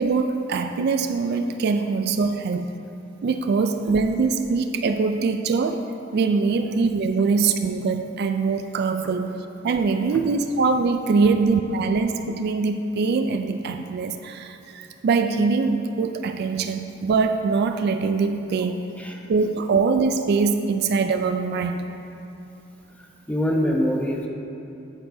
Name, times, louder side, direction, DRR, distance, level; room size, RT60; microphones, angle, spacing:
voice 1, 0.0-2.7 3.2-5.8 6.1-9.3 9.6-18.8 19.3-21.8, right 4 dB, 55° right, 7 dB, 0.3 m, -23 dB
voice 2, 22.9-24.3, equal, 10° left, 0 dB, 0.7 m, -25 dB
9.0 x 8.6 x 2.7 m, 2.8 s
head